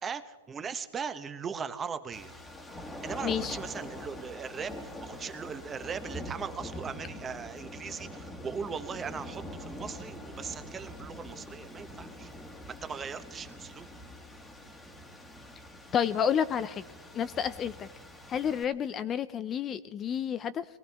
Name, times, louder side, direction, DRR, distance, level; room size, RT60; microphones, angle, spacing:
voice 1, 0.0-2.3 3.0-12.3 12.8-13.9, right 6 dB, 20° right, 10 dB, 0.9 m, -39 dB
sound 1, 2.1-18.6, left 1 dB, 10° left, 1.5 m, -44 dB
voice 2, 3.2-3.6 15.9-16.8 17.1-17.9 18.3-20.7, left 8 dB, 25° left, 13 dB, 0.4 m, -30 dB
23.0 x 16.5 x 3.5 m, 1.5 s
hypercardioid pair, 130°, 0 cm